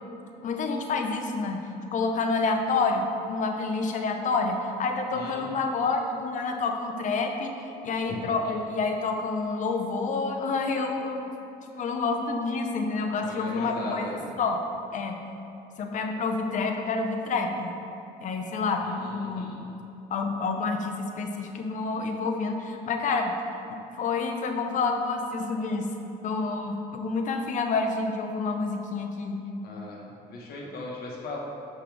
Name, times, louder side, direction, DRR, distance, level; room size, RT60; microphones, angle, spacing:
voice 1, 0.4-1.6 1.9-11.3 11.7-14.6 14.9-15.1 15.8-17.7 18.2-19.6 20.1-23.3 23.9-25.9 26.2-29.4, left 4 dB, 50° left, 3 dB, 0.7 m, -28 dB
voice 2, 5.1-5.4 13.2-14.1 18.8-19.6 29.6-30.0 30.3-31.4, left 2 dB, 65° left, -3 dB, 1.4 m, -38 dB
6.2 x 5.6 x 3.4 m, 2.9 s
cardioid pair, 110°, 17 cm